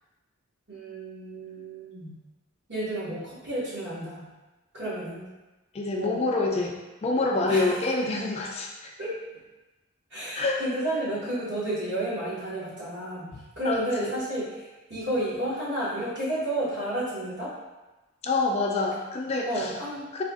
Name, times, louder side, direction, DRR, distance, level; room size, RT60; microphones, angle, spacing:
voice 1, 0.7-2.2 2.7-4.3 4.7-5.3 5.9-6.2 7.5-7.7 9.0-9.2 10.1-17.5 19.5-20.0, right 1 dB, 55° right, -8 dB, 1.4 m, -31 dB
voice 2, 5.7-6.8 7.0-8.9 10.4-10.6 13.3-14.1 18.2-19.7 20.1-20.2, left 3 dB, 30° left, 0 dB, 0.3 m, -27 dB
3.5 x 2.3 x 3.6 m, 1.1 s
head